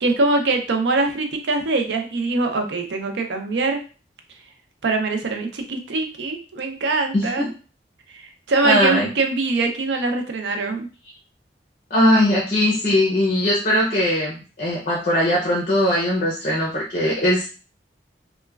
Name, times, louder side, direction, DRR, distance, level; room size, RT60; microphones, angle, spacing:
voice 1, 0.0-3.8 4.8-7.5 8.1-10.9, right 3 dB, 85° right, 5 dB, 0.5 m, -23 dB
voice 2, 7.1-7.5 8.6-9.1 11.9-17.5, left 1 dB, 45° left, -4 dB, 0.7 m, -20 dB
3.0 x 2.2 x 2.3 m, 0.35 s
head